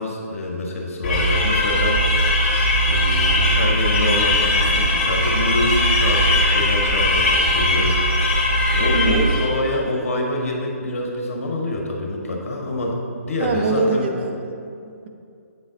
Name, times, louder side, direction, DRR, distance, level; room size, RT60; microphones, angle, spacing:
voice 1, 0.0-2.0 2.8-7.9 8.7-13.0 13.2-14.1, left 1 dB, 60° left, 0 dB, 1.2 m, -26 dB
sound 1, 1.0-9.6, left 1 dB, 40° left, 1.3 m, -19 dB
voice 2, 8.9-9.3 13.4-15.1, right 3 dB, 45° right, 3 dB, 0.6 m, -24 dB
7.9 x 4.0 x 3.9 m, 2.5 s
figure-of-eight pair, 140°, 8 cm